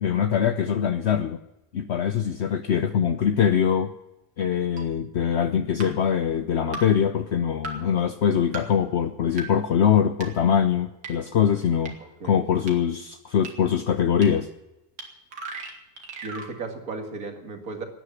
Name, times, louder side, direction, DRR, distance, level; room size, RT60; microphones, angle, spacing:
voice 1, 0.0-1.4 1.7-3.9 4.4-12.0 12.2-14.5, left 8 dB, 65° left, 9 dB, 0.6 m, -23 dB
sound 1, 4.8-4.9 5.8-5.9 6.7-6.8 7.6-7.7 8.5-8.6 9.4-9.5 10.2-10.3 11.0-11.1 11.9-12.0 12.7-12.8 13.4-13.5 14.2-14.3 15.0-15.1 15.3-16.5, right 3 dB, 80° right, 2.8 m, -35 dB
voice 2, 12.0-12.4 12.8-12.9 16.2-17.8, right 3 dB, 55° right, 4 dB, 2.5 m, -35 dB
18.0 x 10.0 x 7.1 m, 0.96 s
omnidirectional pair, 1.9 m